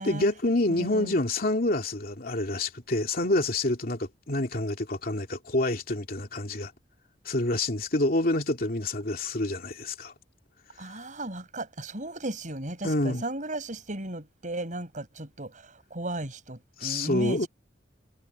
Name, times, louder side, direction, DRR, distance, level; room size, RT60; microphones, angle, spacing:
voice 1, 0.0-6.7 7.2-10.1 12.8-13.2 16.8-17.5, left 2 dB, 55° left, 2.8 m, -27 dB
voice 2, 0.7-1.2 10.8-17.5, right 1 dB, 45° right, 7.3 m, -35 dB
head